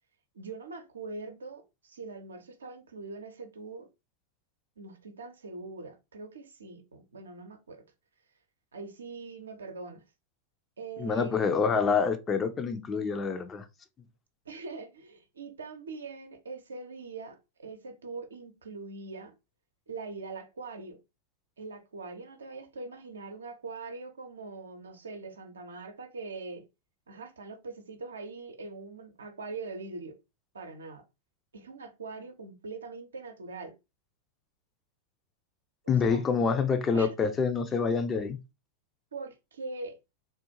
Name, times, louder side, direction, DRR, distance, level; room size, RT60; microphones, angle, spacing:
voice 1, 0.3-3.9 4.8-7.8 8.7-10.0 10.8-11.6 14.5-19.3 19.9-21.0 21.6-26.6 27.1-30.1 30.5-31.0 31.5-33.7 35.8-36.2 36.9-37.1 39.1-40.0, right 3 dB, 70° right, 0.6 m, -42 dB
voice 2, 11.0-13.7 35.9-38.4, left 5 dB, 20° left, 0.5 m, -27 dB
3.7 x 2.4 x 2.7 m
figure-of-eight pair, 90°, 0 cm